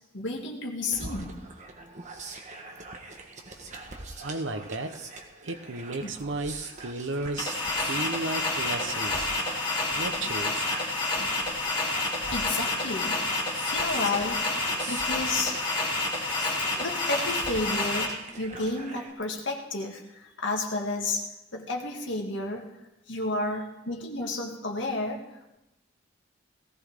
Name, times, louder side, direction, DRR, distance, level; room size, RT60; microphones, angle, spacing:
voice 1, 0.1-1.3 6.0-6.1 12.3-14.4 14.9-15.6 16.8-21.2 21.5-22.7 23.1-25.6, left 2 dB, 75° left, 1 dB, 2.2 m, -32 dB
sound 1, 0.9-19.1, right 3 dB, 40° right, 1.4 m, -43 dB
voice 2, 4.2-5.0 5.4-9.3 9.9-10.7, right 2 dB, 85° right, 9 dB, 1.0 m, -34 dB
sound 2, 7.4-18.1, left 2 dB, 25° left, 3.0 m, -29 dB
18.0 x 16.0 x 3.7 m, 0.93 s
head